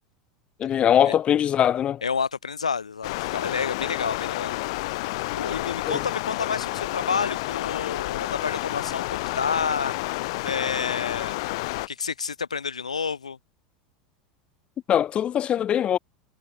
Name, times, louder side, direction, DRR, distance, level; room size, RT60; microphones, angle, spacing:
voice 1, 0.6-2.0 5.9-6.0 14.9-16.0, left 10 dB, 35° left, 1.2 m, -22 dB
voice 2, 2.0-4.6 5.3-9.9 10.4-11.4 11.9-13.4, left 5 dB, 80° left, 1.3 m, -29 dB
Stream, 3.0-11.9, left 21 dB, 60° left, 1.7 m, -30 dB
figure-of-eight pair, 80°, 3 cm